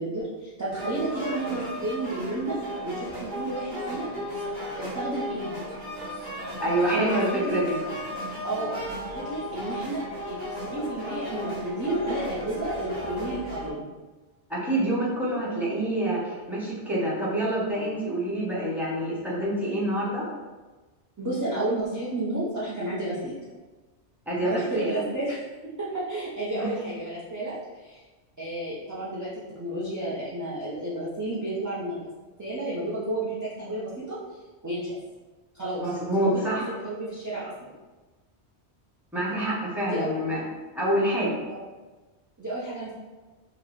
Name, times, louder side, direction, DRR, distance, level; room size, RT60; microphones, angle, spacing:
voice 1, 0.0-2.6 2.8-4.4 4.7-5.7 6.8-7.6 8.4-10.4 10.6-13.9 21.2-23.4 24.4-25.4 25.8-28.0 28.4-32.0 32.4-34.2 34.6-34.9 35.5-37.7 39.8-40.1 41.5-41.6 42.4-43.0, right 1 dB, 25° right, -8 dB, 0.4 m, -32 dB
sound 1, 0.7-13.7, equal, 70° right, 1.2 m, -35 dB
voice 2, 6.6-7.8 14.5-20.2 24.3-25.0 26.6-26.9 35.8-36.7 39.1-40.4 40.7-41.4, right 1 dB, ahead, -7 dB, 0.8 m, -27 dB
3.2 x 2.1 x 3.8 m, 1.2 s
omnidirectional pair, 1.2 m